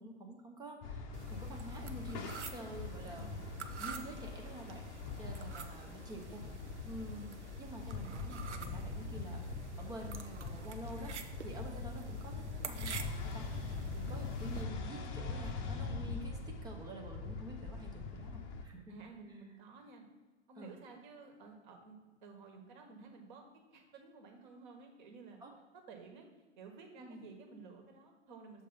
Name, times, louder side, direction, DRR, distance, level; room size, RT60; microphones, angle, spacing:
voice 1, 0.0-4.9 5.2-9.4 9.8-18.9 19.3-19.4 20.6-20.7 25.4-25.5 27.0-27.3, right 1 dB, 10° right, 1 dB, 0.6 m, -49 dB
sound 1, 0.8-18.6, left 4 dB, 30° left, 0.7 m, -42 dB
sound 2, 1.1-14.6, right 6 dB, 75° right, 0.7 m, -49 dB
voice 2, 3.0-3.6 5.3-5.5 18.9-20.1 20.5-23.4 23.7-25.4 25.7-26.3 26.6-28.7, right 4 dB, 45° right, 3 dB, 1.4 m, -53 dB
6.7 x 3.6 x 5.5 m, 1.2 s
figure-of-eight pair, 105°, 35 cm